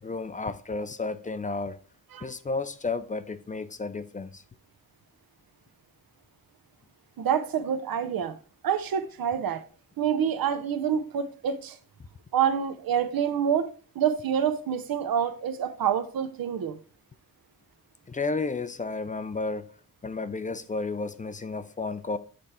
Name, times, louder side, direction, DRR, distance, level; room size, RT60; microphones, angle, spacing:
voice 1, 0.0-1.8 2.2-4.4 18.1-19.7 20.0-22.2, left 3 dB, 25° left, 0.4 m, -32 dB
voice 2, 7.2-8.3 8.6-9.6 10.0-11.8 12.3-13.7 13.9-16.8, right 8 dB, 80° right, 0.8 m, -27 dB
8.5 x 3.4 x 4.2 m
wide cardioid pair, 95°, 35 cm